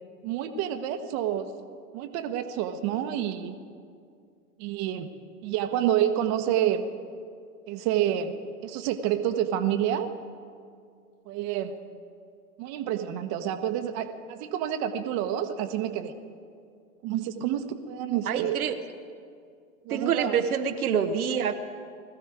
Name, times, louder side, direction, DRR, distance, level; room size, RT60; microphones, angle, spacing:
voice 1, 0.2-1.5 1.9-3.5 4.6-5.1 5.4-6.8 7.7-8.3 8.6-10.1 11.3-11.7 12.6-16.1 17.0-18.6 19.8-20.4, right 10 dB, 40° right, 8 dB, 1.1 m, -28 dB
voice 2, 18.3-18.8 19.9-21.5, right 7 dB, 75° right, 7 dB, 1.0 m, -26 dB
20.5 x 14.5 x 4.9 m, 2.3 s
hypercardioid pair, 100°, 44 cm